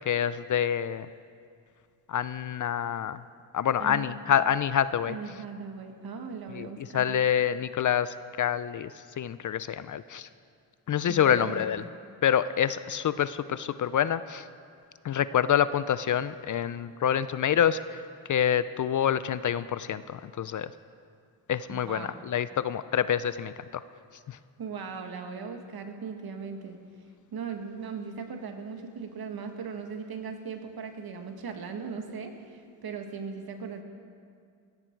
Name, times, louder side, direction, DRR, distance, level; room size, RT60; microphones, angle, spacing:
voice 1, 0.1-1.1 2.1-3.2 3.5-5.2 6.5-10.3 10.9-11.8 12.2-14.5 15.0-18.0 18.3-20.7 21.5-23.5 24.3-24.4, left 9 dB, 45° left, 14 dB, 0.5 m, -27 dB
voice 2, 3.8-4.1 5.1-7.1 11.1-11.9 21.7-22.2 24.6-26.8 27.3-33.8, right 5 dB, 55° right, 5 dB, 1.8 m, -38 dB
17.0 x 15.5 x 4.6 m, 2.3 s
cardioid pair, 85°, 45 cm